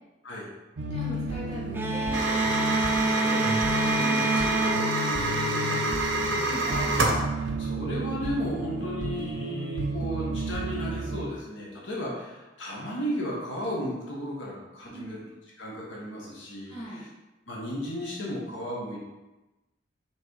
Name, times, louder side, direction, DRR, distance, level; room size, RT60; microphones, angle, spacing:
sound 1, 0.8-11.3, right 2 dB, 65° right, 0.5 m, -33 dB
voice 1, 0.9-2.2 2.5-4.6 6.4-7.0 14.9-15.2 16.7-17.1, equal, 30° left, -7 dB, 1.8 m, -41 dB
sound 2, 1.7-6.2, right 2 dB, 10° right, 0.4 m, -28 dB
sound 3, 2.1-7.3, right 2 dB, 90° right, 0.8 m, -28 dB
voice 2, 3.9-15.2 15.6-17.0 17.5-19.0, equal, 80° left, -4 dB, 1.4 m, -35 dB
6.1 x 3.3 x 4.7 m, 1.1 s
head